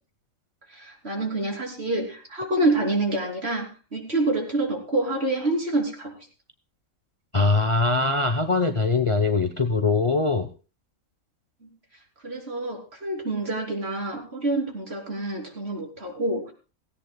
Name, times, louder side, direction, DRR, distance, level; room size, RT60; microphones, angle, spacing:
voice 1, 0.7-6.1 11.6-11.7 12.2-16.5, right 2 dB, 45° right, 1 dB, 3.5 m, -27 dB
voice 2, 7.3-10.5, left 3 dB, 30° left, 6 dB, 0.7 m, -22 dB
17.0 x 17.0 x 2.3 m, 0.35 s
omnidirectional pair, 1.5 m